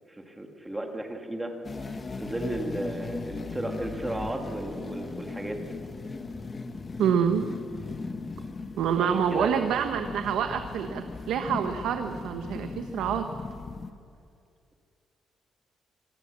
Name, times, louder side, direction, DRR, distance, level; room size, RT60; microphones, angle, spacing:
voice 1, 0.1-1.5 1.9-5.6 9.0-9.5, right 1 dB, 10° right, 3 dB, 2.0 m, -34 dB
sound 1, 1.6-13.9, left 3 dB, 20° left, 1.0 m, -38 dB
voice 2, 7.0-7.4 8.8-13.2, right 8 dB, 90° right, 6 dB, 1.2 m, -27 dB
25.5 x 18.5 x 7.4 m, 2.3 s
cardioid pair, 180°, 0 cm